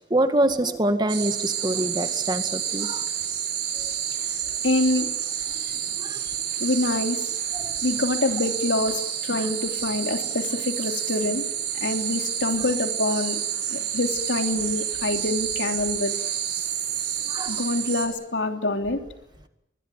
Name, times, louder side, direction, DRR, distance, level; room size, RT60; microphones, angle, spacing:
voice 1, 0.1-3.1 3.7-3.9 5.5-5.7 6.0-6.4 7.5-7.8 9.3-9.5 12.6-12.7 17.2-17.6, right 1 dB, 25° right, 8 dB, 2.1 m, -26 dB
sound 1, 1.1-18.1, right 9 dB, 65° right, 6.9 m, -29 dB
voice 2, 4.6-5.1 6.6-7.2 7.8-11.4 11.8-13.4 13.7-16.1 17.4-19.0, left 2 dB, 85° left, 5 dB, 3.1 m, -26 dB
24.5 x 21.5 x 9.2 m, 0.82 s
head